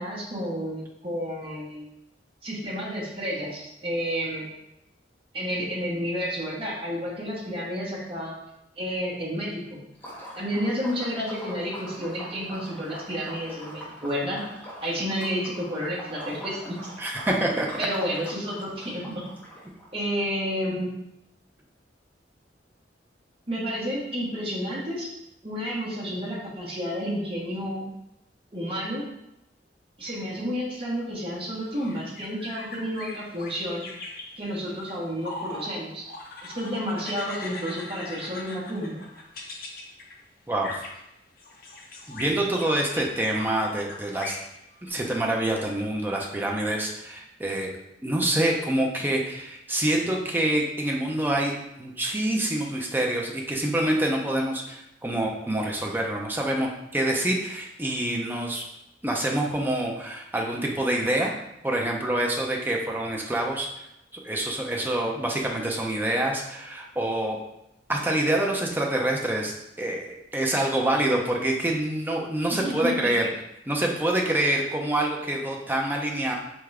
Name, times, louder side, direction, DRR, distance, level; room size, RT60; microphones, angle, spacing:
voice 1, 0.0-1.9 2.4-4.5 5.3-8.3 8.8-9.8 10.3-14.4 14.8-16.7 17.8-19.2 19.9-20.9 23.5-25.1 25.4-27.9 28.5-29.0 30.0-33.8 34.4-36.0 36.4-39.0 72.6-73.1, equal, 30° right, -6 dB, 1.1 m, -30 dB
Liquid, 9.9-19.9, equal, 10° left, 0.9 m, -43 dB
voice 2, 17.0-17.7 40.5-40.8 42.1-44.3 44.8-47.7 48.0-51.5 51.8-58.6 59.0-61.3 61.6-63.7 64.1-67.4 67.9-73.3 73.7-76.4, right 1 dB, 10° right, -1 dB, 0.5 m, -26 dB
sound 1, 31.6-35.8 36.0-40.2 40.6-41.0 41.4-44.9, left 2 dB, 55° left, 0.7 m, -41 dB
3.8 x 3.6 x 3.3 m, 0.84 s
head